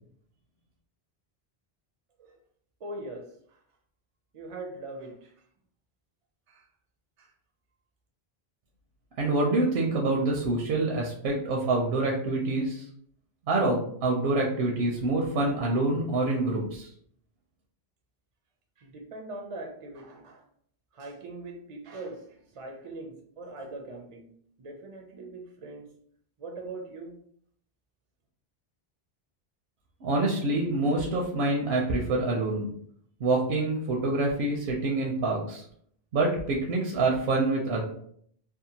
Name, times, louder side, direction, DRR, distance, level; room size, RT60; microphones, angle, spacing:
voice 1, 2.8-3.6 4.3-5.4 6.5-6.7 7.2-7.3 18.8-20.4 20.9-24.3 24.6-25.9 26.4-27.2, right 2 dB, 50° right, 2 dB, 0.4 m, -41 dB
voice 2, 9.2-12.9 13.5-16.9 30.0-32.7 33.2-35.6 36.1-37.8, right 2 dB, 85° right, -1 dB, 0.8 m, -26 dB
2.7 x 2.2 x 2.7 m, 0.64 s
omnidirectional pair, 1.0 m